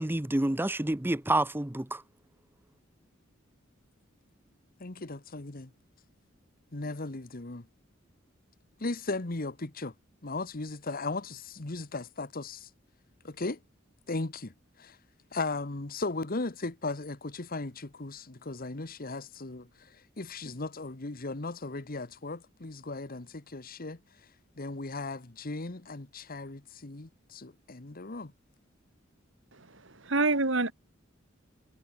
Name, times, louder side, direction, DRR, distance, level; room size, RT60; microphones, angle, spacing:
voice 1, 0.0-2.0, right 1 dB, 10° right, 0.7 m, -28 dB
voice 2, 4.8-5.7 6.7-7.7 8.8-9.9 10.2-12.7 13.2-13.6 14.1-14.5 14.8-15.0 15.3-24.0 24.6-28.3, left 3 dB, 45° left, 1.3 m, -37 dB
voice 3, 29.5-30.7, right 3 dB, 65° right, 2.6 m, -28 dB
head